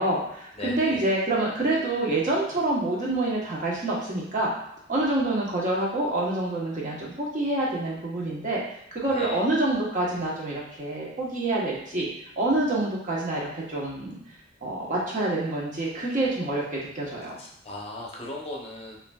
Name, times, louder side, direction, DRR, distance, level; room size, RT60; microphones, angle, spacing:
voice 1, 0.0-4.5 4.9-8.6 8.9-12.1 12.4-14.2 14.6-17.3, right 2 dB, 40° right, -4 dB, 1.1 m, -27 dB
voice 2, 0.5-1.1 9.1-9.4 17.2-19.0, left 1 dB, 30° left, -2 dB, 0.7 m, -38 dB
5.7 x 2.7 x 2.3 m, 0.77 s
head